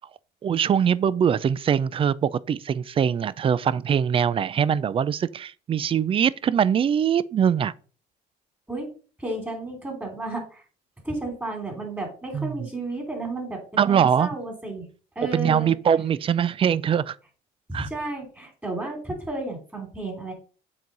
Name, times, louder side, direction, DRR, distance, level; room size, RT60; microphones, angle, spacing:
voice 1, 0.4-7.7 12.3-12.7 13.8-14.3 15.3-17.2 17.7-17.9, right 8 dB, 35° right, 0.4 m, -22 dB
voice 2, 9.2-10.6 11.0-14.8 15.1-15.7 17.7-20.3, right 2 dB, 10° right, 3.0 m, -32 dB
7.1 x 4.7 x 3.9 m
cardioid pair, 110°, 17 cm